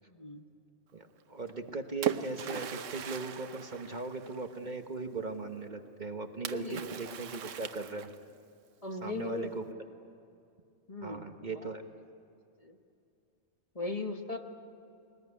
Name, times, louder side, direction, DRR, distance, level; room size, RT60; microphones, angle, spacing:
voice 1, 0.1-0.4 6.5-7.0 8.8-9.5 10.9-11.7 12.6-12.8 13.7-14.4, left 3 dB, 30° left, 4 dB, 1.3 m, -38 dB
voice 2, 0.9-8.1 9.0-9.8 11.0-11.8, right 3 dB, 40° right, 6 dB, 1.2 m, -38 dB
Splash splatter, 1.5-4.7 6.5-8.4, right 9 dB, 85° right, 1.2 m, -39 dB
22.0 x 20.0 x 9.7 m, 2.5 s
omnidirectional pair, 1.3 m